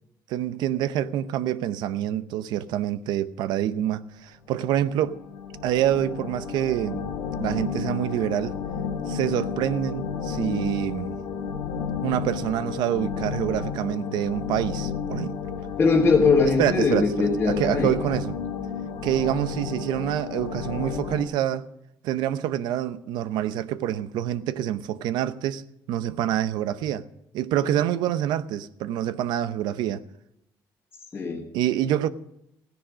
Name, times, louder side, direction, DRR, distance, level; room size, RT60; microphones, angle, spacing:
voice 1, 0.3-5.2 5.6-7.0 7.4-8.6 9.1-11.2 12.0-15.4 16.6-18.3 19.0-21.7 22.0-25.6 25.9-27.0 27.3-30.0 31.5-32.1, right 11 dB, 85° right, 0.7 m, -26 dB
sound 1, 4.9-21.2, left 6 dB, 90° left, 2.0 m, -32 dB
voice 2, 15.8-17.9 31.1-31.4, left 4 dB, 25° left, 1.8 m, -21 dB
15.5 x 10.0 x 6.2 m
cardioid pair, 140°, 7 cm